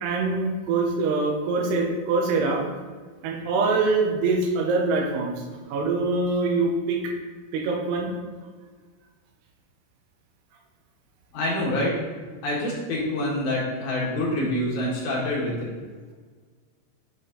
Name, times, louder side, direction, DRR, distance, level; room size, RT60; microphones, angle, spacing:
voice 1, 0.0-2.6 3.2-5.4 5.7-7.1 7.5-8.2, right 3 dB, 80° right, 1 dB, 2.9 m, -24 dB
voice 2, 11.3-11.9 12.4-15.7, left 1 dB, 60° left, -5 dB, 2.4 m, -26 dB
7.6 x 4.3 x 3.8 m, 1.5 s
omnidirectional pair, 4.8 m